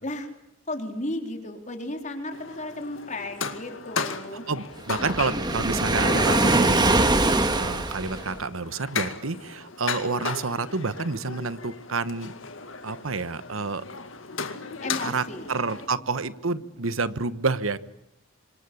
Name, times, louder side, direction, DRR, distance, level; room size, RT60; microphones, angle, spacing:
voice 1, 0.7-4.5 14.3-15.5, left 1 dB, 35° left, 5 dB, 4.0 m, -34 dB
sound 1, 2.3-15.9, left 5 dB, 75° left, 2.1 m, -36 dB
voice 2, 4.5-7.1 7.5-12.3 12.8-13.8 15.0-17.8, right 4 dB, 85° right, 14 dB, 1.2 m, -29 dB
Waves surf, 4.9-8.4, right 2 dB, 20° right, 1.7 m, -22 dB
28.0 x 25.5 x 8.5 m, 0.79 s
head